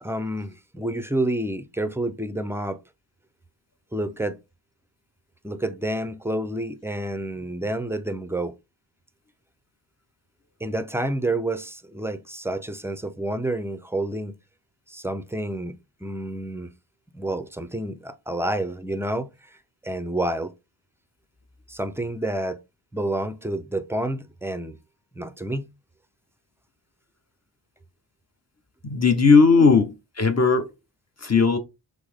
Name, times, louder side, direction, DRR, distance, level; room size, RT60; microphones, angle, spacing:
voice 1, 0.0-2.8 3.9-4.4 5.4-8.5 10.6-14.3 14.9-16.7 17.1-19.3 19.8-20.5 21.7-22.6 22.9-24.8 25.2-25.7, right 1 dB, 5° right, 0.5 m, -29 dB
voice 2, 28.8-30.7 31.2-31.6, left 4 dB, 35° left, 0.8 m, -17 dB
6.2 x 2.1 x 3.5 m
wide cardioid pair, 80°, 46 cm